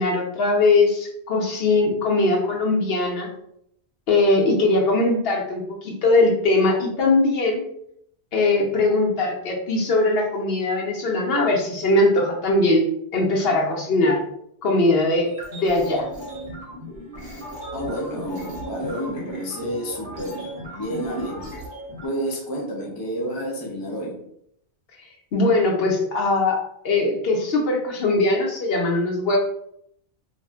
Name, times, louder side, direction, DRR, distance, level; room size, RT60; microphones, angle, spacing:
voice 1, 0.0-3.3 4.1-7.6 8.3-12.9 13.1-14.2 14.6-16.1 25.3-26.6 26.8-29.4, left 2 dB, 65° left, -1 dB, 0.8 m, -20 dB
sound 1, 15.2-22.1, equal, 55° right, 1.0 m, -37 dB
voice 2, 17.7-21.4 22.0-24.3, equal, 25° left, -2 dB, 0.5 m, -30 dB
2.4 x 2.1 x 3.4 m, 0.72 s
omnidirectional pair, 1.1 m